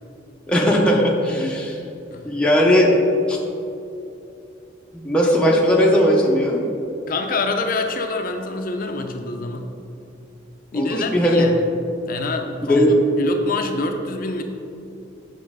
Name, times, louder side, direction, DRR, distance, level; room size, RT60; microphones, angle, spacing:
voice 1, 0.5-1.8 2.2-2.9 3.3-3.4 4.9-6.6 10.7-11.5 12.7-13.0, equal, 5° left, -3 dB, 0.7 m, -17 dB
voice 2, 7.1-9.7 10.7-11.5 12.1-12.8 13.2-14.4, left 3 dB, 45° left, 5 dB, 0.5 m, -26 dB
7.6 x 5.8 x 3.6 m, 2.7 s
head